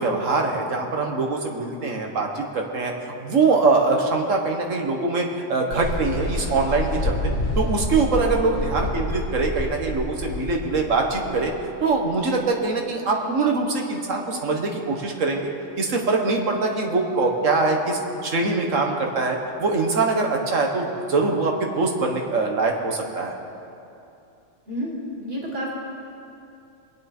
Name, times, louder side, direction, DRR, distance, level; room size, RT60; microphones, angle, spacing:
voice 1, 0.0-2.9 3.2-11.5 11.8-15.5 15.8-23.3, right 3 dB, 85° right, 2 dB, 1.7 m, -23 dB
sound 1, 5.7-12.3, left 1 dB, 60° left, 1.3 m, -28 dB
voice 2, 24.7-25.7, equal, 50° right, -4 dB, 2.9 m, -30 dB
22.0 x 9.3 x 4.4 m, 2.7 s
omnidirectional pair, 1.3 m